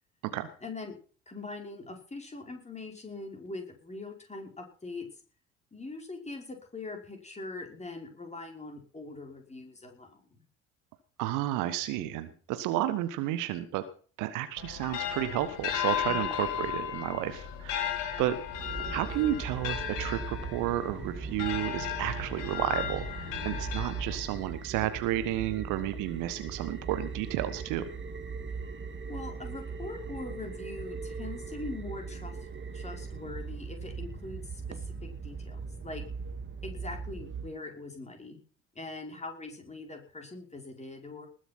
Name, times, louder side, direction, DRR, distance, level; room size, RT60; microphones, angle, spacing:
voice 1, 0.6-0.9 1.3-5.1 5.7-10.4 16.1-16.4 23.3-23.6 29.1-32.4 32.7-36.0 36.6-38.4 38.8-41.3, left 3 dB, 20° left, 3 dB, 5.4 m, -42 dB
voice 2, 11.2-13.8 14.2-18.4 18.9-27.8, right 13 dB, 55° right, 12 dB, 1.4 m, -32 dB
sound 1, 14.6-24.5, left 10 dB, 60° left, 2.3 m, -35 dB
sound 2, 18.5-37.5, right 5 dB, 30° right, 2.2 m, -39 dB
20.0 x 8.0 x 6.0 m, 0.41 s
figure-of-eight pair, 55°, 37 cm